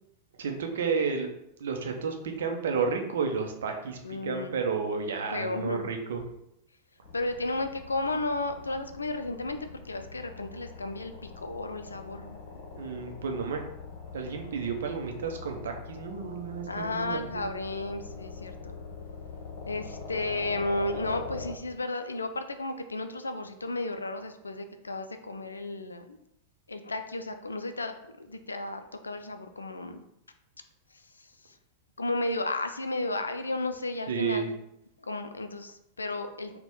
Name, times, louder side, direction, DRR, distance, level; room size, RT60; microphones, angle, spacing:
voice 1, 0.4-1.3 1.6-6.2 12.7-13.6 14.1-17.5 34.1-34.5, right 5 dB, 60° right, 4 dB, 0.6 m, -31 dB
voice 2, 4.0-4.6 5.3-5.9 7.1-12.4 16.7-18.8 19.7-26.2 26.7-30.0 30.9-31.5 32.0-34.5 35.0-36.6, left 2 dB, 75° left, 8 dB, 0.3 m, -33 dB
sound 1, 7.0-21.5, left 4 dB, 50° left, 0.8 m, -43 dB
4.1 x 2.2 x 3.6 m, 0.79 s
figure-of-eight pair, 90°, 0 cm